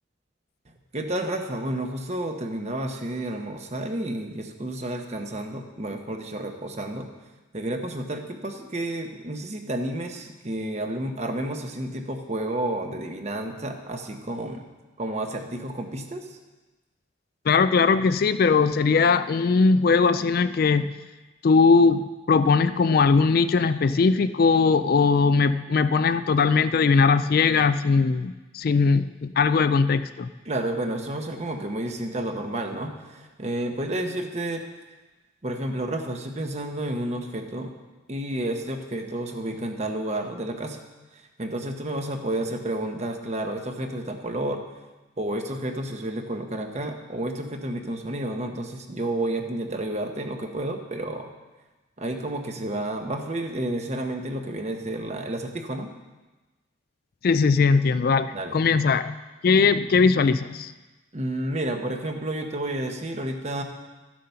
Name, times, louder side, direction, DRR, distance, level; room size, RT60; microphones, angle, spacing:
voice 1, 0.9-7.1 7.5-14.6 15.0-16.3 30.5-34.6 35.4-37.7 38.1-40.8 41.4-44.6 45.2-51.3 52.0-55.9 58.3-58.6 61.1-63.6, right 1 dB, 35° right, 5 dB, 1.0 m, -30 dB
voice 2, 17.5-21.0 21.4-30.3 57.2-59.1 59.4-60.7, left 4 dB, 50° left, 13 dB, 0.4 m, -20 dB
13.0 x 7.5 x 5.6 m, 1.2 s
head